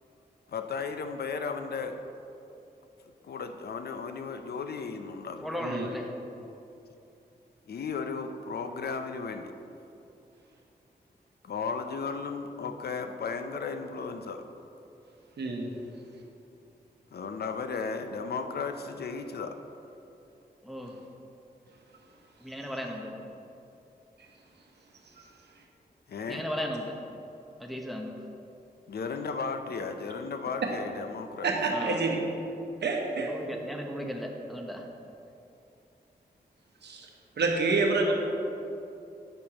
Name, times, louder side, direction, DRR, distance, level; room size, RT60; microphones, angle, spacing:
voice 1, 0.5-2.0 3.2-5.6 7.7-9.5 11.4-14.4 17.1-19.6 26.1-26.4 28.9-31.5, left 5 dB, 65° left, 7 dB, 0.5 m, -35 dB
voice 2, 5.4-6.1 20.6-21.0 22.4-23.1 26.3-26.9 27.6-28.2 31.7-32.0 33.3-34.9, equal, ahead, 1 dB, 0.9 m, -36 dB
voice 3, 15.4-15.7 31.4-32.2 32.8-33.3 36.8-37.1 37.4-38.1, right 3 dB, 80° right, 1 dB, 0.9 m, -27 dB
8.8 x 6.3 x 2.9 m, 2.8 s
cardioid pair, 65°, 17 cm